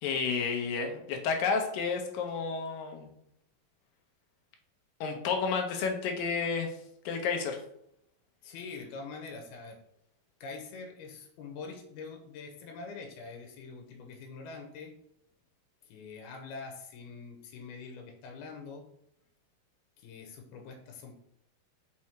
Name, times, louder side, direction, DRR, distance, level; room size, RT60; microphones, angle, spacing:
voice 1, 0.0-3.1 5.0-6.7 7.1-7.6, left 5 dB, 70° left, 3 dB, 2.5 m, -31 dB
voice 2, 8.4-9.8 10.4-14.9 15.8-18.9 20.0-21.2, left 4 dB, 85° left, 3 dB, 3.0 m, -44 dB
6.1 x 4.7 x 4.3 m, 0.75 s
omnidirectional pair, 4.4 m